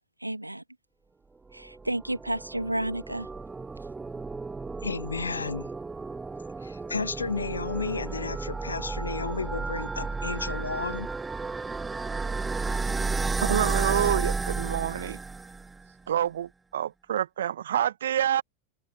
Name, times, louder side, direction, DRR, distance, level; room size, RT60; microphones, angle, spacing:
voice 1, 0.2-0.6 1.5-3.3, right 1 dB, 85° right, 2.5 m, -31 dB
sound 1, 1.6-15.8, right 4 dB, 10° right, 1.0 m, -32 dB
voice 2, 4.8-5.7 6.6-11.1, left 4 dB, 75° left, 2.6 m, -32 dB
voice 3, 13.5-15.2 16.1-18.4, right 10 dB, 60° right, 1.6 m, -27 dB
figure-of-eight pair, 90°, 0 cm